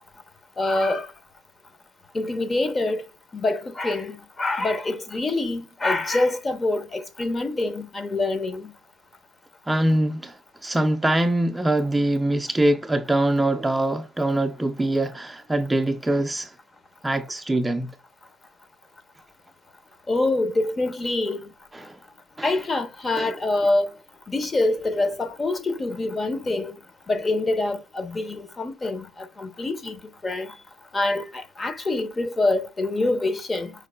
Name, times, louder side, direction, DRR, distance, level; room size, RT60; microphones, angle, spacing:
voice 1, 0.6-1.1 2.1-3.0 3.3-8.7 20.1-21.5 22.4-23.9 24.3-26.8 27.1-30.6 30.9-33.7, left 2 dB, 25° left, 0.7 m, -25 dB
voice 2, 9.7-16.5 17.0-17.9 21.7-22.0 22.4-22.5 23.2-23.3, right 1 dB, 10° right, 0.4 m, -23 dB
5.1 x 4.6 x 2.2 m
hypercardioid pair, 80°, 0 cm